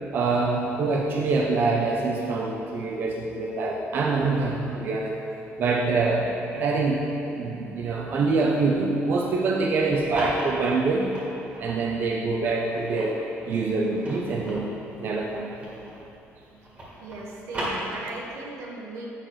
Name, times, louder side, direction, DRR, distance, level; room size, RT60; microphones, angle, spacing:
voice 1, 0.1-5.1 5.6-11.3 11.6-13.2 13.5-14.7 15.0-15.6, right 3 dB, 45° right, -1 dB, 0.6 m, -25 dB
sound 1, 9.9-11.8 12.4-16.1 16.4-18.4, equal, 25° right, 1.8 m, -36 dB
voice 2, 17.0-19.1, right 2 dB, 85° right, -1 dB, 1.3 m, -38 dB
9.0 x 5.8 x 4.7 m, 2.8 s
cardioid pair, 180°, 5 cm